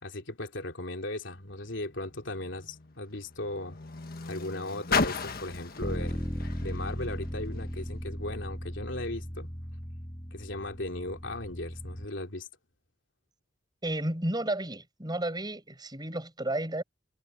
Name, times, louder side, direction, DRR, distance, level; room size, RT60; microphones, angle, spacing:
voice 1, 0.0-3.8 4.3-6.2 6.6-9.5 10.3-12.5, left 2 dB, 70° left, 3.2 m, -37 dB
Car, 1.3-7.9 8.7-8.8, left 4 dB, 50° left, 1.5 m, -36 dB
Bass guitar, 5.8-12.1, equal, 15° left, 2.4 m, -37 dB
voice 2, 13.8-16.8, right 1 dB, 20° right, 7.0 m, -32 dB
head